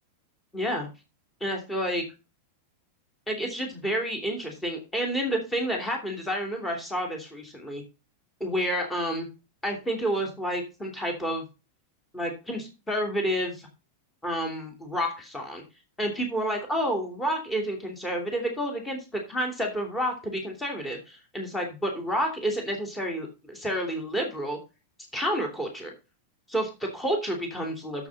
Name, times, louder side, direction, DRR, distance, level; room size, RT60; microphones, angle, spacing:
voice 1, 0.5-0.9 1.4-2.0 3.3-7.8 8.4-9.3 9.6-11.4 12.1-13.7 14.2-15.6 16.0-24.6 25.1-25.9 26.5-28.1, equal, 10° left, 2 dB, 2.8 m, -29 dB
9.3 x 7.4 x 4.1 m, 0.29 s
figure-of-eight pair, 90°, 0 cm